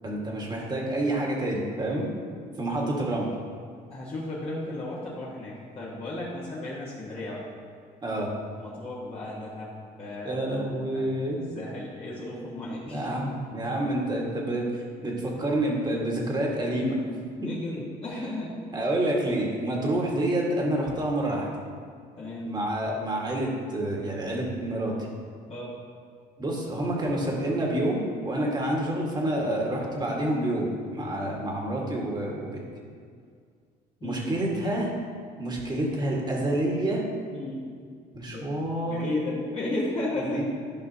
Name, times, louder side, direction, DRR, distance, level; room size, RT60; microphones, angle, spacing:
voice 1, 0.0-2.1 2.6-3.3 8.0-8.3 10.2-11.5 12.9-17.0 18.7-21.5 22.4-24.9 26.4-32.7 34.0-34.9 35.4-37.0 38.1-39.0 40.2-40.4, right 1 dB, 25° right, -2 dB, 1.7 m, -28 dB
voice 2, 3.9-7.5 8.6-9.7 10.0-10.4 10.8-11.3 11.5-13.2 17.4-18.6 22.2-22.5 25.5-25.7 34.0-34.2 37.3-37.6 38.3-38.5 38.9-40.4, left 2 dB, 35° left, -8 dB, 1.5 m, -34 dB
12.5 x 5.2 x 2.8 m, 2.1 s
cardioid pair, 110°, 17 cm